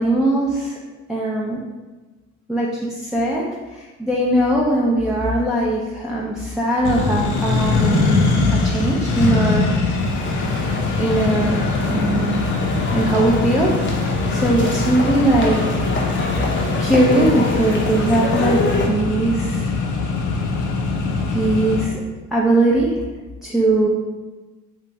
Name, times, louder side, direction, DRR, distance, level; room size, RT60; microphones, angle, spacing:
voice 1, 0.0-0.7 1.1-1.6 2.5-3.4 3.7-9.7 11.0-12.5 12.9-15.9 16.2-18.6 18.8-19.7 21.3-22.0 22.3-22.9 23.4-23.9, right 1 dB, ahead, -5 dB, 0.4 m, -20 dB
Accelerating revving vroom, 6.8-21.8, left 3 dB, 80° left, 0.6 m, -22 dB
sound 1, 9.9-18.9, left 2 dB, 40° left, 0.6 m, -26 dB
3.0 x 2.5 x 3.3 m, 1.2 s
cardioid pair, 90°, 30 cm